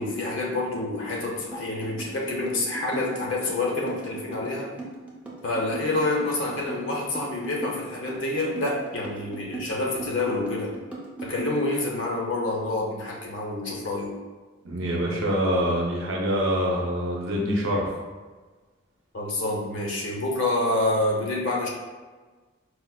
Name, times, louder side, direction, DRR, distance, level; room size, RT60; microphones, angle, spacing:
voice 1, 0.0-4.7 5.4-10.7 11.2-14.2 19.1-21.7, left 2 dB, 70° left, -2 dB, 0.7 m, -27 dB
sound 1, 1.5-12.0, right 3 dB, 5° right, 0.4 m, -38 dB
voice 2, 14.6-17.9, equal, 80° right, -2 dB, 0.6 m, -25 dB
4.3 x 2.1 x 2.2 m, 1.3 s
head